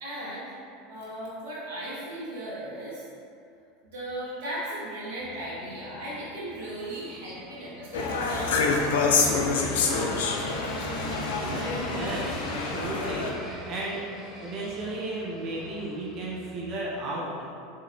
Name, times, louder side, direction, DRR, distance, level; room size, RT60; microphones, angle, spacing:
voice 1, 0.0-0.5 0.9-3.1 3.8-8.6 9.0-10.6, right 1 dB, 65° right, -7 dB, 1.0 m, -37 dB
sound 1, 5.2-16.8, equal, 20° left, 0.9 m, -43 dB
sound 2, 7.9-13.3, left 4 dB, 70° left, 0.3 m, -27 dB
voice 2, 11.4-17.5, right 2 dB, 45° right, -5 dB, 0.5 m, -34 dB
3.5 x 3.1 x 2.2 m, 2.5 s
figure-of-eight pair, 80°, 0 cm